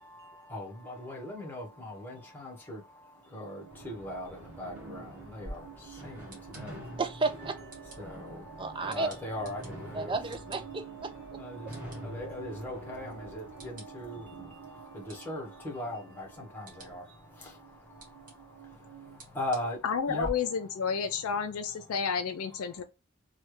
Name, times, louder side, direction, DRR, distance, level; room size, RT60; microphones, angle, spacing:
voice 1, 0.0-7.0 7.8-10.2 11.1-20.3 20.7-22.0 22.7-22.8, left 1 dB, 10° left, 1.1 m, -41 dB
sound 1, 0.8-2.7 3.2-19.2, right 9 dB, 80° right, 0.5 m, -51 dB
sound 2, 3.7-13.7, equal, 5° right, 1.4 m, -47 dB
sound 3, 5.4-20.3, equal, 40° right, 1.4 m, -53 dB
voice 2, 7.0-7.5 8.6-9.1 9.9-11.1, right 3 dB, 25° right, 0.4 m, -32 dB
voice 3, 19.8-22.8, left 6 dB, 90° left, 0.4 m, -31 dB
3.1 x 2.3 x 3.1 m
head